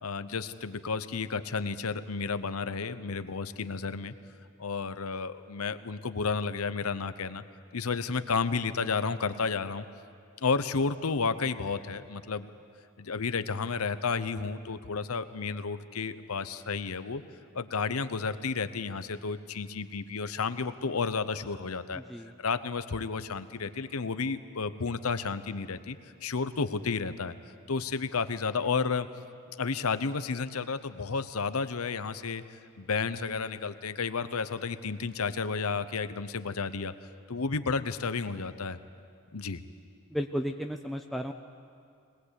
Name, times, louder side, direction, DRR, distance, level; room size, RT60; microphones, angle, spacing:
voice 1, 0.0-4.1 4.6-7.4 7.7-9.8 10.4-12.5 13.0-17.2 17.5-22.0 22.4-27.3 27.7-29.1 29.6-36.9 37.3-38.8 39.3-39.6, left 4 dB, 90° left, 12 dB, 0.9 m, -32 dB
voice 2, 21.9-22.3 40.1-41.3, equal, ahead, 3 dB, 0.5 m, -34 dB
21.5 x 20.0 x 8.2 m, 2.3 s
head